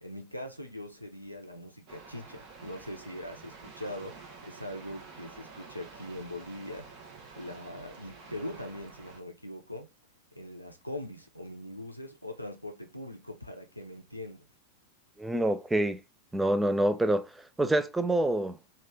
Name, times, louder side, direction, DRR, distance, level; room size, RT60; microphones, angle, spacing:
voice 1, 0.0-6.9 7.4-9.9 10.3-14.4, left 1 dB, 90° left, 0.5 m, -41 dB
sound 1, 1.9-9.2, right 4 dB, 40° right, 0.9 m, -49 dB
voice 2, 15.2-16.0 16.3-17.3 17.6-18.6, right 1 dB, 10° right, 0.4 m, -26 dB
3.1 x 2.4 x 3.5 m
figure-of-eight pair, 90°, 0 cm